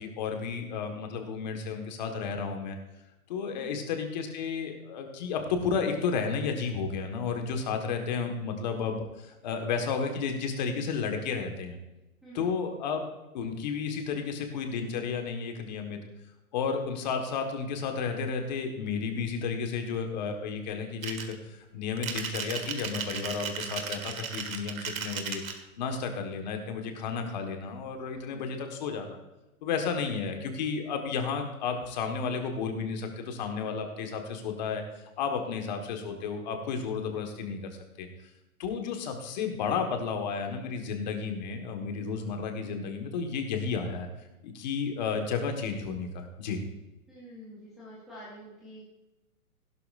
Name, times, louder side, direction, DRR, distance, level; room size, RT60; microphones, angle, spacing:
voice 1, 0.0-2.8 3.3-11.8 12.3-13.1 13.3-16.0 16.5-25.4 25.8-29.2 29.6-38.1 38.6-44.1 44.4-46.6, left 5 dB, 30° left, 4 dB, 1.5 m, -32 dB
voice 2, 12.2-12.5 28.1-28.6 35.4-35.6 41.9-42.2 47.1-48.9, equal, ahead, -11 dB, 0.6 m, -48 dB
sound 1, 21.0-21.3 22.0-25.6, right 7 dB, 65° right, 1.8 m, -35 dB
16.0 x 12.0 x 2.5 m, 1.0 s
hypercardioid pair, 165°, 44 cm